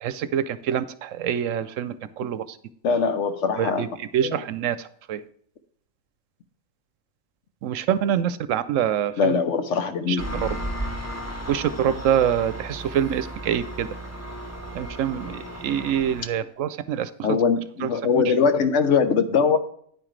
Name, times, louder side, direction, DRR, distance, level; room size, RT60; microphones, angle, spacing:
voice 1, 0.0-2.6 3.6-5.2 7.6-9.4 10.1-10.5 11.5-13.9 14.7-17.1 17.8-17.9 18.1-18.2, right 9 dB, 75° right, 0.9 m, -25 dB
voice 2, 2.8-3.8 4.2-4.4 9.2-10.2 17.2-19.6, left 6 dB, 65° left, 1.1 m, -21 dB
Engine, 10.2-16.2, right 1 dB, 10° left, 1.2 m, -34 dB
9.8 x 8.7 x 3.2 m
omnidirectional pair, 1.4 m